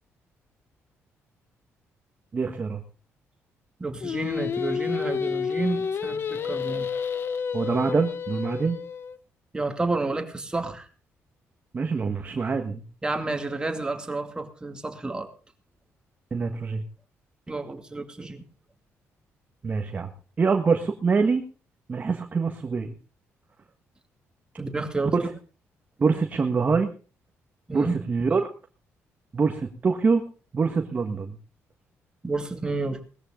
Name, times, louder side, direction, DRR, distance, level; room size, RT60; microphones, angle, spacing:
voice 1, 2.3-2.8 7.5-8.8 11.7-12.8 16.3-16.8 19.6-20.1 20.4-21.4 21.9-22.9 25.2-25.3 26.0-26.9 27.7-28.4 29.3-30.2 30.5-31.3, right 4 dB, 35° right, 5 dB, 1.5 m, -25 dB
voice 2, 3.8-6.9 9.5-10.9 13.0-15.3 17.5-18.4 24.6-25.1 27.7-28.0 32.2-33.0, right 3 dB, 15° right, 5 dB, 2.4 m, -30 dB
Singing, 4.0-9.2, left 6 dB, 50° left, 1.0 m, -30 dB
19.0 x 14.0 x 3.8 m, 0.36 s
cardioid pair, 115°, 5 cm